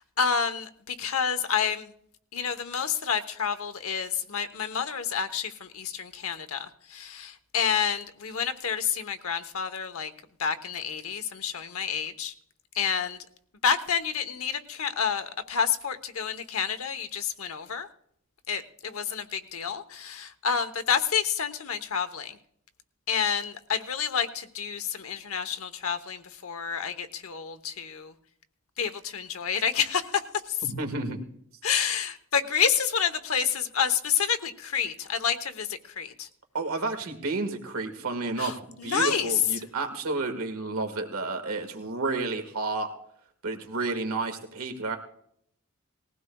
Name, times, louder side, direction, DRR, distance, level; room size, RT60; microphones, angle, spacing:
voice 1, 0.0-1.9 2.3-10.1 10.4-12.3 12.7-13.2 13.6-17.9 18.5-22.4 23.1-28.1 28.8-30.2 30.5-30.6 31.6-36.3 38.4-39.3, left 7 dB, 85° left, 10 dB, 1.0 m, -29 dB
voice 2, 30.6-31.2 36.5-42.9 43.4-45.0, right 3 dB, 90° right, 6 dB, 1.7 m, -31 dB
20.0 x 15.5 x 2.3 m, 0.67 s
head